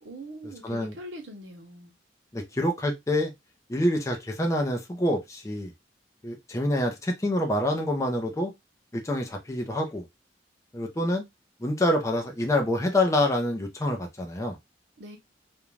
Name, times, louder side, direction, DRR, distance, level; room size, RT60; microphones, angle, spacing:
voice 1, 0.0-1.9 15.0-15.2, right 1 dB, 80° right, 0.8 m, -42 dB
voice 2, 0.6-0.9 2.3-3.3 3.7-5.7 6.2-8.5 8.9-10.0 10.7-11.2 11.6-14.6, left 1 dB, 15° left, 0.4 m, -26 dB
2.5 x 2.2 x 3.1 m
head